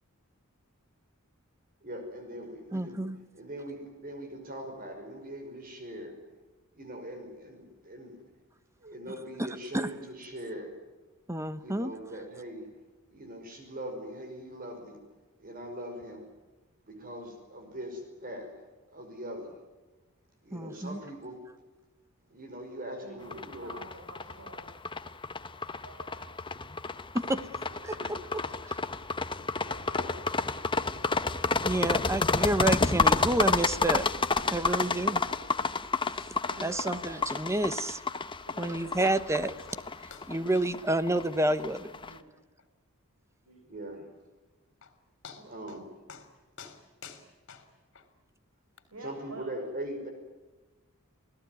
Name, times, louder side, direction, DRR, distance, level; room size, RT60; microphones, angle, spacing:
voice 1, 1.8-3.0 3.3-6.2 6.7-8.2 8.8-10.7 11.6-12.7 13.1-15.0 15.4-16.3 16.9-18.5 18.9-19.6 20.4-21.4 22.3-23.7 27.9-28.3 29.9-30.1 43.6-44.1 45.4-45.9 49.0-50.1, right 1 dB, 40° right, 5 dB, 5.5 m, -41 dB
voice 2, 2.7-3.2 9.4-9.9 11.3-11.9 20.5-21.0 27.1-27.5 27.8-28.2 31.6-34.0 34.5-35.2 36.1-38.0 38.6-39.5 40.3-41.9, right 1 dB, 15° right, 13 dB, 1.1 m, -29 dB
voice 3, 23.0-24.7 25.5-26.4 27.6-27.9 28.2-28.6 29.4-30.3 31.0-31.3 34.3-35.7 36.5-37.3 38.5-39.5 42.0-42.3 43.5-44.0 45.3-45.5 48.9-49.5, right 2 dB, 90° right, 2 dB, 6.0 m, -49 dB
sound 1, 23.3-42.1, left 4 dB, 25° left, 1.0 m, -30 dB
sound 2, 39.7-39.9 40.1-40.3 40.6-40.7 41.0-41.1 41.5-41.6 42.0-42.1 42.6-42.7 44.4-44.5 44.8-44.9 45.2-45.8 46.1-46.3 46.6-48.1 48.8-48.9, left 6 dB, 60° left, 3.5 m, -48 dB
28.0 x 17.5 x 9.4 m, 1.2 s
head